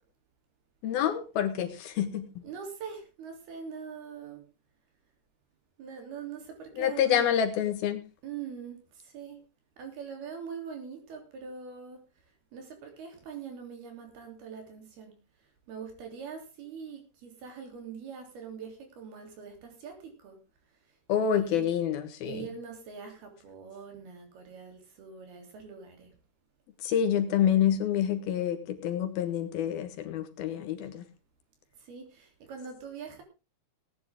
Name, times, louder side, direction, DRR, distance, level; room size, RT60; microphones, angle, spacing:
voice 1, 0.8-2.4 6.8-8.0 21.1-22.4 26.8-31.0, left 9 dB, 70° left, 8 dB, 3.3 m, -27 dB
voice 2, 2.4-4.5 5.8-7.3 8.2-8.8 9.1-9.4 9.8-12.0 12.5-15.2 15.7-20.4 21.2-21.7 22.2-26.1 31.9-33.2, right 6 dB, 75° right, 4 dB, 5.2 m, -43 dB
18.5 x 10.5 x 3.7 m, 0.31 s
omnidirectional pair, 4.5 m